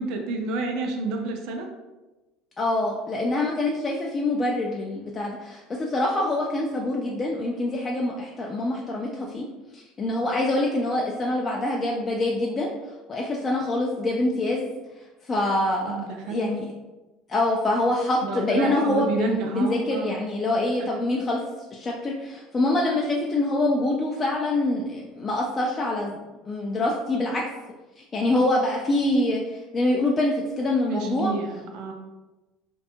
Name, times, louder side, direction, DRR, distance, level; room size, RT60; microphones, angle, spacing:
voice 1, 0.0-1.7 15.9-16.5 18.2-20.1 20.8-20.9 30.9-31.9, right 3 dB, 65° right, 3 dB, 0.4 m, -30 dB
voice 2, 2.6-9.5 9.7-12.7 13.1-14.7 15.2-16.7 17.3-21.4 21.7-27.5 28.0-31.3, left 2 dB, 30° left, -2 dB, 0.3 m, -25 dB
2.5 x 2.2 x 2.7 m, 1.1 s
supercardioid pair, 95°, 0 cm